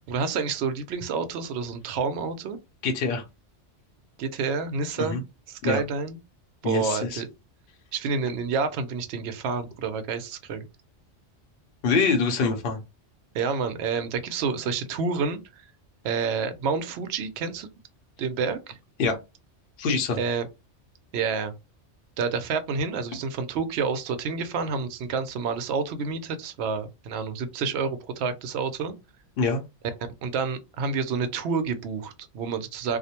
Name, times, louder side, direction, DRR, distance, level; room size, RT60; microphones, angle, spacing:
voice 1, 0.1-2.6 4.2-5.2 5.5-6.2 6.6-7.3 7.9-10.7 13.3-15.4 16.0-17.7 18.2-18.8 20.2-20.5 21.1-21.5 22.2-28.9 30.2-33.0, right 5 dB, 70° right, 0.8 m, -29 dB
voice 2, 2.8-3.2 5.0-5.2 5.6-5.8 6.6-7.2 11.8-12.8 19.0-19.2 19.8-20.2 29.4-29.6, left 4 dB, 60° left, 0.8 m, -24 dB
2.4 x 2.0 x 2.8 m
omnidirectional pair, 1.2 m